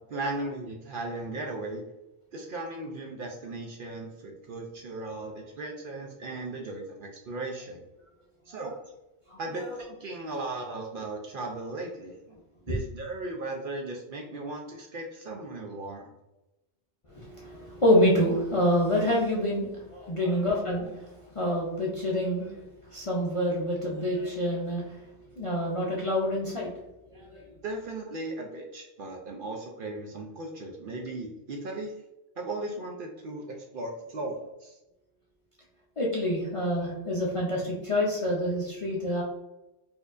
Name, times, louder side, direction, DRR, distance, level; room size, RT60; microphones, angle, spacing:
voice 1, 0.1-1.8 2.3-7.8 8.5-8.7 9.4-12.4 12.7-16.1 27.6-31.9 32.4-34.8, right 2 dB, 60° right, 1 dB, 0.6 m, -37 dB
voice 2, 9.3-9.8 12.7-12.8 17.1-25.0 25.4-26.7 27.1-27.4 36.0-39.2, equal, 40° left, -4 dB, 0.4 m, -27 dB
4.3 x 2.6 x 2.4 m, 0.97 s
omnidirectional pair, 1.2 m